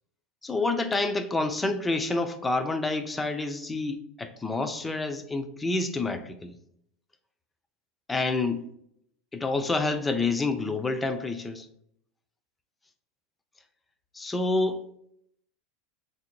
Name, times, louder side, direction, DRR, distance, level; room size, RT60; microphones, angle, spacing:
voice 1, 0.4-6.5 8.1-8.6 9.3-11.7 14.2-14.8, left 3 dB, 10° left, 0.4 m, -28 dB
3.4 x 2.6 x 4.4 m
supercardioid pair, 140°, 0 cm